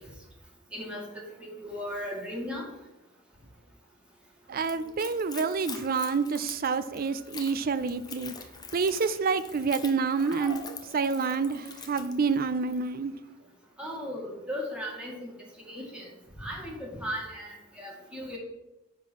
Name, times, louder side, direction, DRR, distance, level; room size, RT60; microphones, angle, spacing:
voice 1, 0.7-1.1 1.6-2.7 10.2-10.6 13.8-15.3 15.7-16.1 16.4-18.4, equal, 5° right, -3 dB, 1.9 m, -36 dB
voice 2, 4.5-8.3 8.7-13.1, right 5 dB, 45° right, 14 dB, 0.4 m, -28 dB
Splash splatter / Trickle dribble, 4.6-12.9, left 6 dB, 20° left, 0.7 m, -45 dB
9.6 x 3.8 x 6.0 m, 0.98 s
head